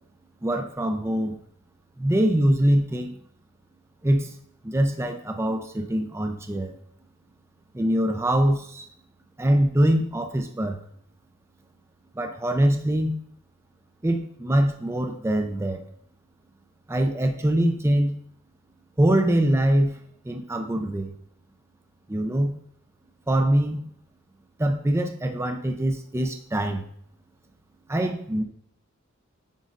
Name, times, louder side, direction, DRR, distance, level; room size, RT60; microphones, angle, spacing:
voice 1, 0.4-1.3 2.0-3.1 4.0-4.4 4.6-6.7 7.7-8.9 9.4-10.8 12.2-13.2 14.0-15.9 16.9-18.2 19.0-21.1 22.1-22.5 23.3-23.9 24.6-26.8 27.9-28.4, right 1 dB, 15° right, 5 dB, 0.4 m, -23 dB
9.1 x 5.1 x 2.5 m, 0.66 s
head